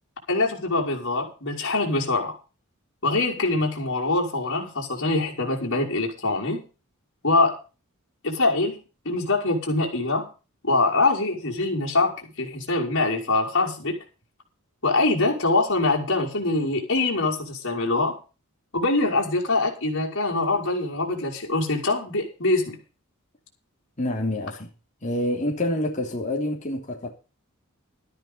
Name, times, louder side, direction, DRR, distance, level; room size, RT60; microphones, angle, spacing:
voice 1, 0.3-2.3 3.0-6.6 7.2-7.5 8.2-10.3 10.6-13.9 14.8-18.2 18.7-22.8, left 2 dB, 60° left, 5.8 m, -24 dB
voice 2, 24.0-24.7 25.0-27.1, left 1 dB, 35° left, 3.2 m, -27 dB
13.5 x 10.5 x 5.6 m
head